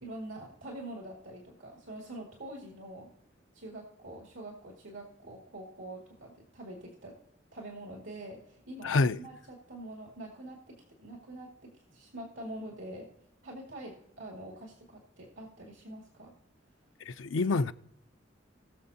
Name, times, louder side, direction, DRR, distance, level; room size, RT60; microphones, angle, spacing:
voice 1, 0.0-3.1 3.5-7.2 7.5-13.1 13.4-16.3, right 1 dB, 80° right, 2.3 m, -45 dB
voice 2, 8.8-9.2 17.1-17.7, left 3 dB, 85° left, 0.5 m, -27 dB
20.0 x 6.9 x 2.8 m
head